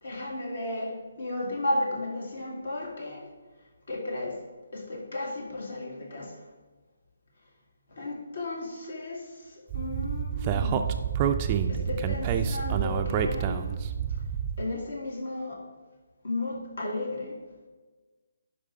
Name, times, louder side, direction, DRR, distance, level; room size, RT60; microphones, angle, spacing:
voice 1, 0.0-3.2 3.9-4.4 4.7-6.3 8.0-9.3 9.7-10.8 11.7-13.8 14.6-15.6 16.2-17.4, left 2 dB, 65° left, 0 dB, 2.0 m, -34 dB
Speech, 9.7-14.6, right 8 dB, 25° right, 0.4 m, -28 dB
11.5 x 5.0 x 3.6 m, 1.3 s
figure-of-eight pair, 145°, 0 cm